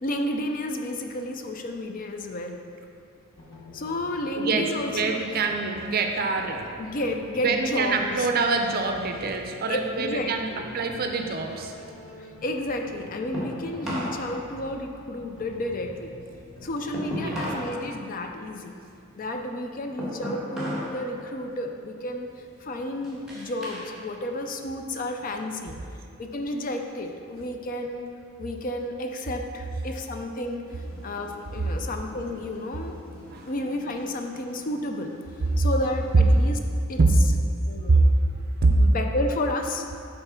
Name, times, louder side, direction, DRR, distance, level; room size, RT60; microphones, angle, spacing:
voice 1, 0.0-2.6 3.7-5.2 6.8-8.3 9.7-10.7 12.2-16.2 16.6-18.7 19.2-22.3 22.6-25.7 26.2-28.0 28.4-33.0 33.4-35.1 35.6-36.6 36.9-37.4 37.7-38.1 38.8-40.0, left 1 dB, 40° left, 4 dB, 0.4 m, -31 dB
sound 1, 3.4-17.8, left 1 dB, 65° left, 1.2 m, -47 dB
voice 2, 4.4-6.9 7.4-11.7 17.2-17.4 25.7-25.8 33.3-33.5 37.0-37.1 37.9-38.0 38.6-38.7, right 4 dB, 45° right, 4 dB, 0.5 m, -25 dB
hammer drop, 11.4-14.2 14.5-17.7 18.1-21.0 21.3-21.7 22.3-23.9 24.3-25.4, equal, ahead, 1.4 m, -36 dB
sound 2, 30.6-36.5, equal, 85° left, 1.5 m, -49 dB
5.7 x 3.9 x 5.6 m, 2.4 s
head